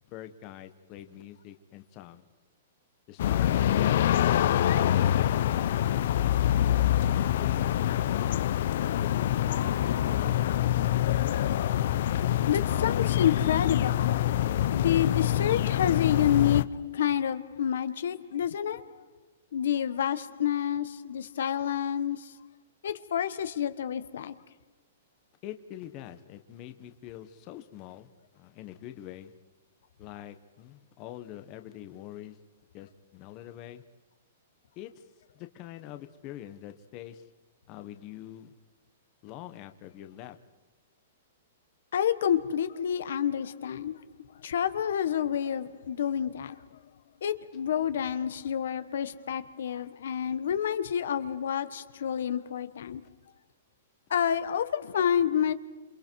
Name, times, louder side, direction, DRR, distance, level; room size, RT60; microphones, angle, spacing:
voice 1, 0.1-2.3 3.1-6.4 7.0-8.4 8.9-11.3 25.4-29.3 30.0-32.4 32.7-33.8 34.7-37.3 37.7-38.5 39.2-40.4, left 12 dB, 30° left, 1.2 m, -45 dB
sound 1, 3.2-16.6, left 11 dB, 55° left, 0.7 m, -25 dB
voice 2, 12.5-19.1 19.5-22.4 22.8-24.3 41.9-44.1 44.4-46.7 47.2-53.0 54.1-55.5, left 9 dB, 75° left, 1.3 m, -29 dB
28.5 x 27.0 x 4.7 m
hypercardioid pair, 165°, 0 cm